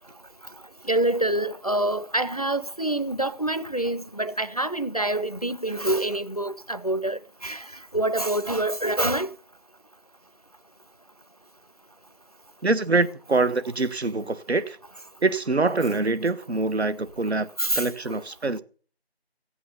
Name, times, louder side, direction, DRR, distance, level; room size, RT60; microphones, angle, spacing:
voice 1, 0.9-7.7 7.9-9.3 17.6-18.2, right 1 dB, 35° left, 0.5 m, -26 dB
voice 2, 12.6-14.8 15.2-17.5 17.7-18.6, right 3 dB, 85° right, 1.1 m, -24 dB
14.5 x 8.6 x 5.6 m
figure-of-eight pair, 175°, 32 cm